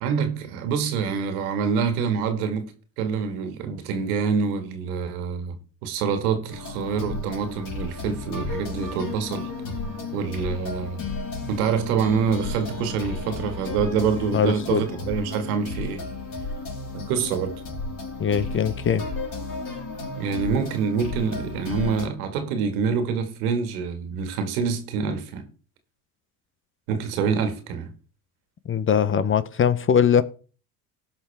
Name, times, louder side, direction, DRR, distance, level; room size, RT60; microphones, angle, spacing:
voice 1, 0.0-5.5 5.8-9.5 10.1-11.0 11.5-16.0 16.9-17.5 20.2-25.5 26.9-27.9, right 6 dB, 85° right, 1.9 m, -26 dB
sound 1, 6.5-22.1, left 3 dB, 50° left, 4.9 m, -33 dB
voice 2, 14.3-14.8 18.2-19.1 28.7-30.2, left 7 dB, 30° left, 0.7 m, -21 dB
17.0 x 5.8 x 3.4 m
supercardioid pair, 85°, 44 cm